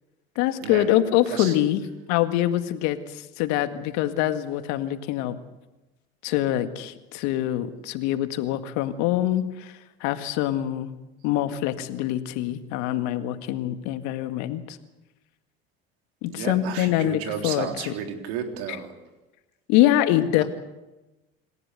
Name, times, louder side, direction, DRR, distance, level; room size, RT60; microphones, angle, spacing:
voice 1, 0.4-1.8 2.1-5.4 6.2-9.7 10.0-10.9 11.2-14.8 16.2-17.9 18.7-18.8 19.7-20.4, left 13 dB, 65° left, 9 dB, 2.0 m, -24 dB
voice 2, 16.3-18.9, right 8 dB, 70° right, 4 dB, 3.8 m, -32 dB
27.5 x 15.0 x 8.2 m, 1.0 s
hypercardioid pair, 70°, 30 cm